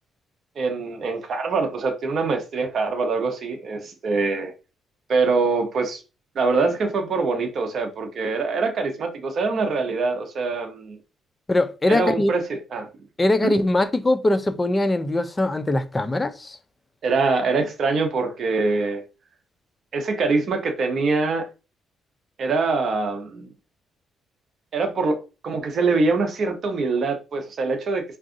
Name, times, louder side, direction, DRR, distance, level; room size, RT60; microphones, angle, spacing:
voice 1, 0.6-4.5 5.1-6.0 6.3-11.0 11.9-12.9 13.4-13.5 17.0-19.0 19.9-21.5 22.4-23.5 24.7-28.0, right 4 dB, 55° right, 0.7 m, -24 dB
voice 2, 11.5-12.3 13.2-16.6, left 1 dB, 20° left, 0.4 m, -21 dB
2.5 x 2.3 x 3.7 m
cardioid pair, 105°, 0 cm